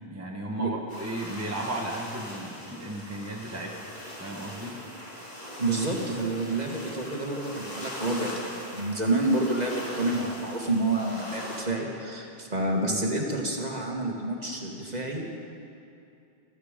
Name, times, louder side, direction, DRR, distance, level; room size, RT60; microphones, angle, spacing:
voice 1, 0.0-3.8 4.2-4.8 12.8-13.0, right 1 dB, 15° right, -1 dB, 1.4 m, -35 dB
sound 1, 0.9-11.6, left 1 dB, 55° left, 3.0 m, -41 dB
voice 2, 5.6-15.4, right 2 dB, 40° right, 0 dB, 1.8 m, -29 dB
20.5 x 13.5 x 5.1 m, 2.6 s
omnidirectional pair, 1.1 m